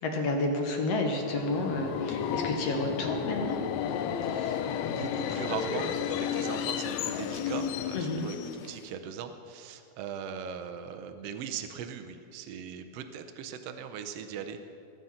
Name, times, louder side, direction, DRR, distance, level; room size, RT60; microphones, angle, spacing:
voice 1, 0.0-3.6 7.9-8.3, left 2 dB, 60° left, 2 dB, 2.2 m, -30 dB
Subway metro underground, 1.2-9.0, left 8 dB, 75° left, 1.9 m, -32 dB
voice 2, 4.2-14.6, right 7 dB, 70° right, 6 dB, 1.6 m, -40 dB
21.5 x 7.9 x 5.7 m, 2.5 s
omnidirectional pair, 3.5 m